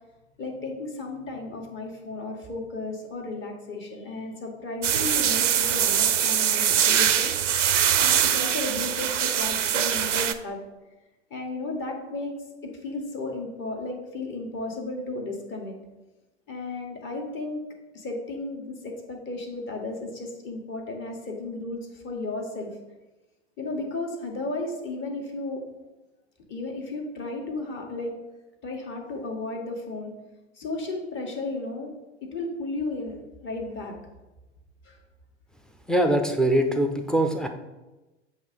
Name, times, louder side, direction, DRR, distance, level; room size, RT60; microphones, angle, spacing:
voice 1, 0.4-7.6 7.9-10.6 11.3-12.3 12.6-15.8 16.5-17.6 17.9-22.8 23.6-25.6 26.5-28.1 28.6-30.1 30.5-31.9 32.2-34.0 34.8-35.0, left 2 dB, 30° left, 1 dB, 1.5 m, -34 dB
sound 1, 4.8-10.3, right 9 dB, 85° right, 0.5 m, -23 dB
voice 2, 35.9-37.5, right 1 dB, ahead, 5 dB, 0.5 m, -22 dB
7.8 x 2.9 x 5.2 m, 1.1 s
figure-of-eight pair, 90°, 36 cm